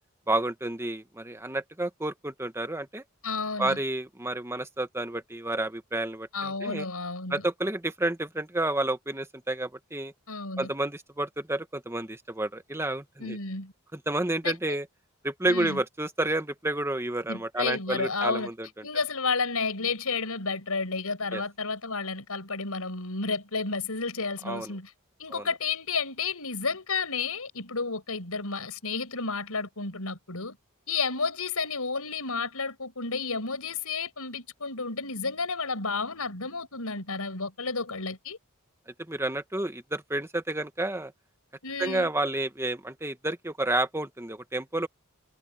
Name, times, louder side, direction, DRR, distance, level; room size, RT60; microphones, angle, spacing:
voice 1, 0.3-3.0 3.6-6.9 7.3-10.1 10.6-13.4 13.9-14.8 15.2-18.9 21.3-21.4 24.4-24.7 25.3-25.4 38.9-41.1 41.8-44.9, right 2 dB, 10° right, 1.5 m, -30 dB
voice 2, 3.2-3.8 6.3-7.4 10.3-10.7 13.2-13.7 14.4-14.8 15.5-15.8 17.3-18.5 18.8-24.9 25.2-30.6 30.9-38.4 41.6-42.1, left 4 dB, 85° left, 5.2 m, -31 dB
head